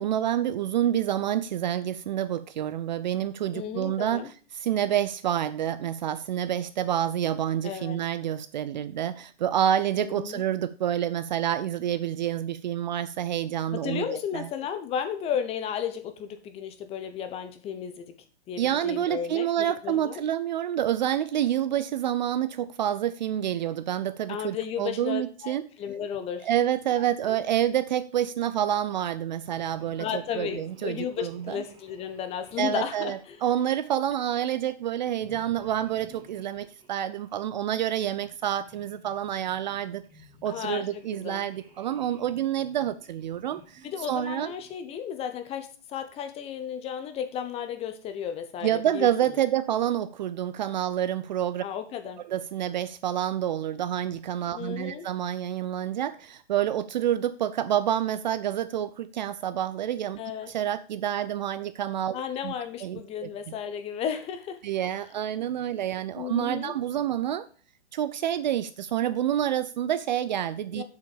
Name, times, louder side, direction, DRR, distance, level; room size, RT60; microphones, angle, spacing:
voice 1, 0.0-4.2 4.5-14.5 18.6-25.6 26.4-31.6 32.6-40.0 40.4-44.5 48.6-51.6 52.2-60.2 60.5-62.2 62.4-62.5 62.8-63.3 64.6-67.5 67.9-70.8, right 11 dB, 40° right, 0.5 m, -28 dB
voice 2, 3.5-4.3 7.6-8.0 10.0-10.4 13.7-18.1 18.5-20.2 24.3-26.5 27.2-27.4 30.0-33.4 36.4-36.5 40.4-41.5 43.8-49.4 51.6-52.2 54.5-55.1 60.2-60.5 62.1-64.6 66.1-66.7 70.7-70.8, left 8 dB, 15° left, 1.0 m, -34 dB
sound 1, 29.4-34.3 35.1-37.5 38.1-44.9, equal, 15° right, 2.1 m, -56 dB
7.6 x 6.1 x 6.9 m
hypercardioid pair, 140°, 35 cm